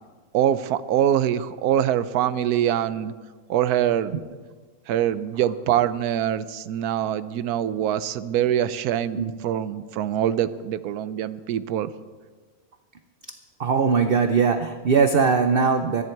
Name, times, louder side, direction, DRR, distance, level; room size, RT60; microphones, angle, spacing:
voice 1, 0.3-3.1 3.5-4.1 4.9-11.9, right 10 dB, 85° right, 14 dB, 1.2 m, -24 dB
voice 2, 13.6-16.0, right 5 dB, 50° right, 8 dB, 0.7 m, -20 dB
23.5 x 10.5 x 4.6 m, 1.4 s
omnidirectional pair, 1.6 m